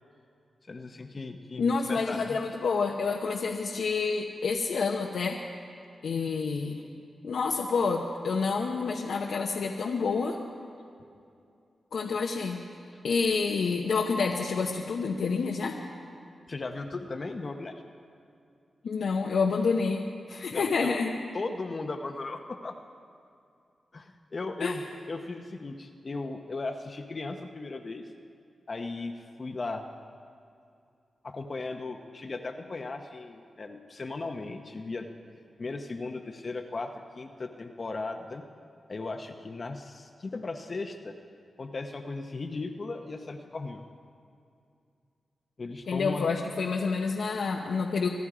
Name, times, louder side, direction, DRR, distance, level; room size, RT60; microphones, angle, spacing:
voice 1, 0.7-2.4 16.5-17.8 20.5-21.0 21.3-22.7 23.9-28.0 28.7-29.8 31.2-35.1 35.6-38.4 38.9-41.1 41.6-43.8 45.6-46.3, left 3 dB, 45° left, 4 dB, 0.9 m, -37 dB
voice 2, 1.6-5.4 6.0-6.8 7.2-10.4 11.9-12.6 13.0-15.7 18.8-20.0 20.3-21.1 24.6-24.8 45.9-48.1, left 4 dB, 80° left, 0 dB, 0.9 m, -28 dB
25.0 x 11.0 x 4.9 m, 2.4 s
cardioid pair, 65°, 0 cm